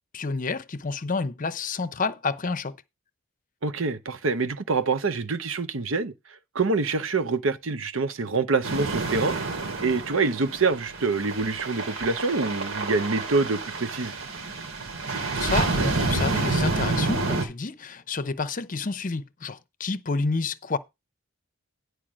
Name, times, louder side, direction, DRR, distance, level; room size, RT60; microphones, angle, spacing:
voice 1, 0.1-2.8 15.3-20.8, left 4 dB, 40° left, 0.7 m, -29 dB
voice 2, 3.6-6.1 6.5-9.4 9.8-14.1, right 4 dB, 70° right, 0.8 m, -26 dB
sound 1, 8.6-17.5, right 3 dB, 90° right, 2.8 m, -29 dB
10.5 x 4.8 x 6.2 m
head